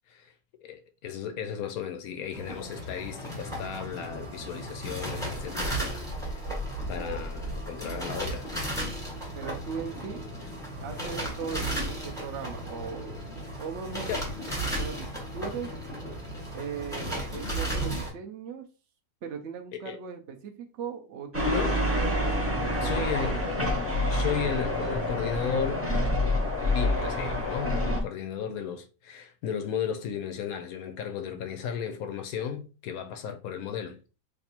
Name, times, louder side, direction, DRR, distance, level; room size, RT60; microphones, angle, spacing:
voice 1, 0.6-6.4 6.9-8.5 14.1-14.3 19.9-20.0 21.4-21.9 22.8-23.4 24.1-25.9 26.6-34.0, left 8 dB, 70° left, 0.8 m, -35 dB
sound 1, 2.3-18.1, right 1 dB, ahead, 1.0 m, -35 dB
voice 2, 9.4-10.3 10.8-13.1 13.6-14.2 14.7-15.7 16.5-18.6 19.2-23.5, right 6 dB, 75° right, 0.6 m, -38 dB
sound 2, 21.3-28.0, left 1 dB, 20° right, 0.3 m, -27 dB
3.4 x 2.5 x 4.3 m
omnidirectional pair, 2.0 m